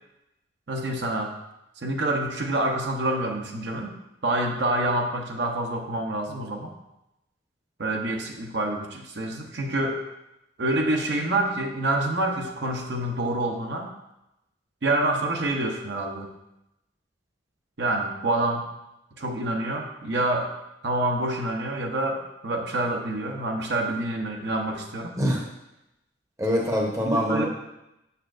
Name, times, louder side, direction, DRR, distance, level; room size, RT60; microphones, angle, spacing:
voice 1, 0.7-1.3 1.8-3.9 4.2-6.7 7.8-10.0 10.6-13.9 14.8-16.3 17.8-18.6 19.2-20.5 20.8-25.1 27.0-27.4, right 2 dB, 60° right, 1 dB, 0.8 m, -27 dB
voice 2, 26.4-27.4, equal, 15° right, -1 dB, 0.8 m, -24 dB
7.0 x 6.7 x 2.5 m, 0.90 s
head